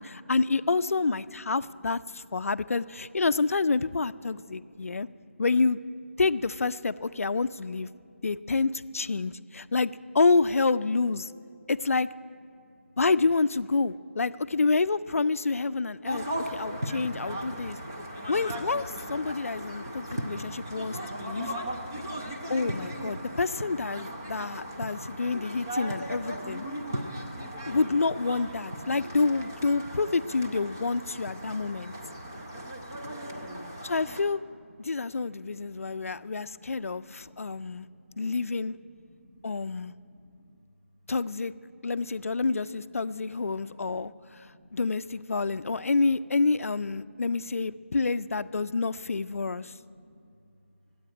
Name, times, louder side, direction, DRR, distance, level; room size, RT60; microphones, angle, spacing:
voice 1, 0.0-5.1 5.4-5.8 6.2-7.9 8.2-11.3 11.7-12.1 13.0-17.8 18.3-21.5 22.5-26.6 27.7-31.9 33.8-34.4 34.8-37.9 38.2-38.7 39.4-39.9 41.1-41.5 41.8-44.5 44.7-49.7, left 4 dB, 80° left, 14 dB, 0.4 m, -28 dB
voice 2, 4.5-5.3 8.0-8.4 9.2-9.5 12.6-12.7 33.2-33.7 34.7-35.1 35.4-38.5 38.7-39.5 40.0-40.6 41.7-42.0 42.4-42.5 42.9-44.8 45.3-45.9 46.6-48.0 48.6-49.2 49.5-50.3, equal, 30° right, 1 dB, 1.1 m, -57 dB
sound 1, 16.0-34.2, equal, 15° right, 0.5 m, -37 dB
14.0 x 8.6 x 9.6 m, 2.5 s
figure-of-eight pair, 180°, 8 cm